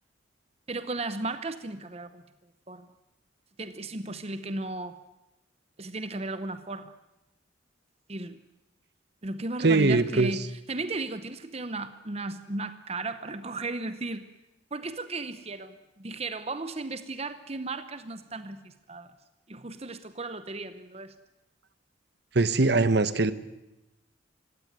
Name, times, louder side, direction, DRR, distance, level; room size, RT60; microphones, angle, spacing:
voice 1, 0.7-2.2 2.7-2.9 3.6-5.0 5.8-6.9 8.1-8.4 9.2-14.3 14.7-19.1 19.5-21.1, right 2 dB, 30° right, 11 dB, 0.9 m, -35 dB
voice 2, 9.6-10.3 22.3-23.3, right 3 dB, 55° right, 14 dB, 1.1 m, -21 dB
25.0 x 16.5 x 9.5 m, 0.99 s
head